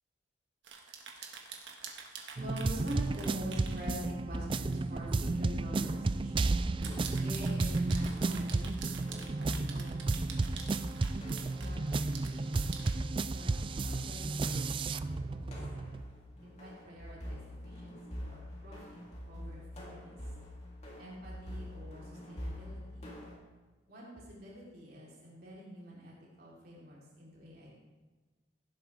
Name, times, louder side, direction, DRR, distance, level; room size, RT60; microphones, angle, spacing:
sound 1, 0.6-3.9 4.7-4.9 5.3-5.4 6.6-12.9, right 6 dB, 85° right, 1.7 m, -47 dB
sound 2, 2.4-16.0, right 3 dB, 30° right, 0.3 m, -33 dB
voice 1, 2.4-6.6 7.2-10.0 11.3-15.9 16.4-19.0 19.2-20.2 21.0-23.1 23.9-27.7, equal, 55° right, -6 dB, 3.7 m, -46 dB
sound 3, 4.2-23.4, equal, 40° left, 3.2 m, -46 dB
16.0 x 11.5 x 3.5 m, 1.3 s
head